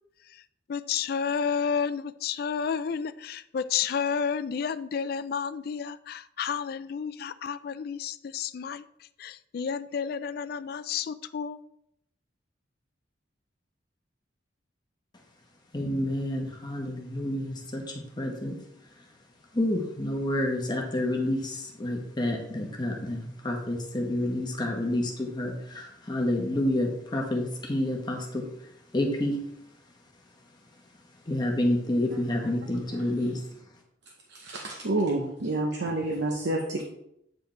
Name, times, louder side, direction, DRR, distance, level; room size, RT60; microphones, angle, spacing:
voice 1, 0.7-8.8 9.2-11.6, left 6 dB, 50° left, 0.3 m, -31 dB
voice 2, 15.7-18.5 19.5-28.4 28.9-29.4 31.3-33.4, left 1 dB, 20° left, 1.0 m, -29 dB
voice 3, 34.3-36.8, right 2 dB, 65° right, 0.8 m, -29 dB
8.5 x 4.8 x 3.2 m
head